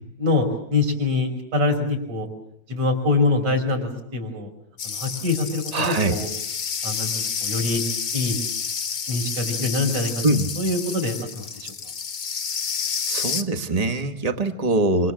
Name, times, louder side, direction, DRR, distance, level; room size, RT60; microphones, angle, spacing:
voice 1, 0.2-2.3 2.7-4.5 4.8-6.3 6.8-7.1 7.4-7.8 8.1-8.4 9.1-10.1 10.6-11.7, left 3 dB, 50° right, 2 dB, 6.8 m, -24 dB
sound 1, 4.8-13.4, left 6 dB, 55° left, 1.0 m, -29 dB
voice 2, 5.7-6.2 10.2-10.5 13.1-15.1, right 2 dB, 65° right, 7 dB, 0.3 m, -22 dB
27.5 x 26.5 x 7.7 m, 0.70 s
omnidirectional pair, 3.8 m